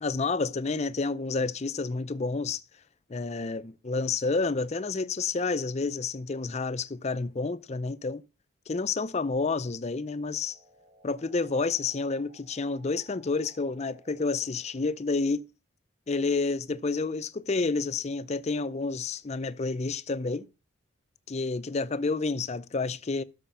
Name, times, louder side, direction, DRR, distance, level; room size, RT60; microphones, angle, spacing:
voice 1, 0.0-2.6 3.1-8.2 8.7-10.6 11.0-15.5 16.1-20.5 21.3-23.2, left 4 dB, 30° left, 0.5 m, -29 dB
sound 1, 10.1-15.0, right 1 dB, 50° right, 3.5 m, -60 dB
13.0 x 5.0 x 5.7 m
head